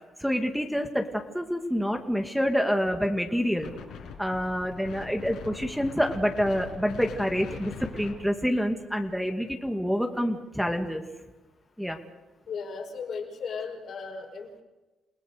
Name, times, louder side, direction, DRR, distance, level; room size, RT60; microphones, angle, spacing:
voice 1, 0.2-3.7 4.2-11.0 11.8-12.0, equal, ahead, 4 dB, 2.2 m, -27 dB
Wind, 3.6-9.1, left 6 dB, 80° left, 6.4 m, -42 dB
voice 2, 12.5-14.6, left 5 dB, 60° left, 2 dB, 5.4 m, -36 dB
29.5 x 18.0 x 6.7 m, 1.1 s
cardioid pair, 90°, 0 cm